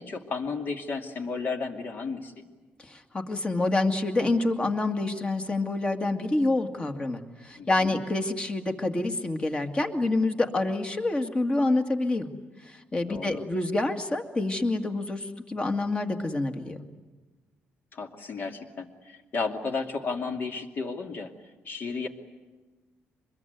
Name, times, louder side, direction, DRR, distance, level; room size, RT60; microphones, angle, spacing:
voice 1, 0.0-2.4 7.6-8.0 13.1-13.4 17.9-21.3 21.6-22.1, left 4 dB, 45° left, 4 dB, 2.6 m, -33 dB
voice 2, 2.8-12.3 12.6-16.8, left 2 dB, 25° left, 6 dB, 2.1 m, -27 dB
25.0 x 21.5 x 9.5 m, 1.3 s
cardioid pair, 115°, 4 cm